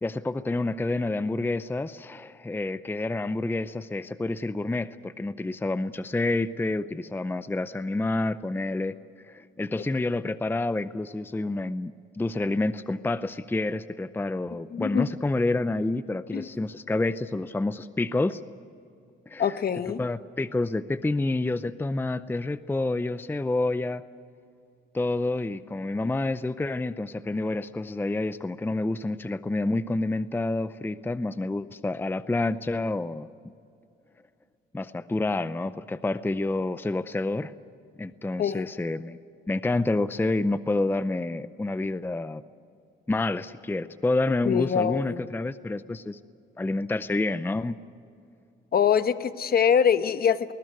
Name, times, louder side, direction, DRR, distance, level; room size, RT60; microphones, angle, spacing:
voice 1, 0.0-9.0 9.3-18.4 19.3-19.6 20.0-24.0 24.9-33.3 34.7-37.5 38.0-39.2 39.5-42.4 43.1-46.2 46.6-47.8, left 2 dB, 10° left, 14 dB, 0.6 m, -28 dB
voice 2, 14.7-15.1 16.3-16.5 19.4-20.0 38.4-38.7 44.4-45.2 48.7-50.5, left 8 dB, 50° left, 12 dB, 1.1 m, -24 dB
20.5 x 20.0 x 9.5 m, 2.5 s
cardioid pair, 90°, 20 cm